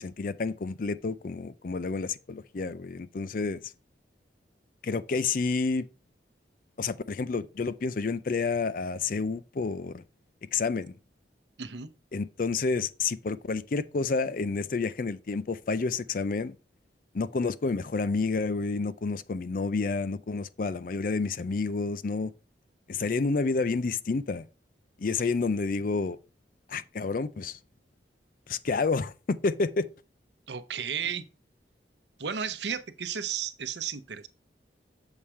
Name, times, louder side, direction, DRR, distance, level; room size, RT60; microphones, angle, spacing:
voice 1, 0.0-3.6 4.8-5.8 6.8-10.0 10.5-11.0 12.1-16.5 17.1-22.3 22.9-24.5 25.0-26.2 26.7-27.6 28.5-29.9, left 4 dB, 50° left, 0.4 m, -29 dB
voice 2, 11.6-11.9 30.5-31.3 32.2-34.3, right 7 dB, 80° right, 0.8 m, -33 dB
7.2 x 4.9 x 4.3 m
head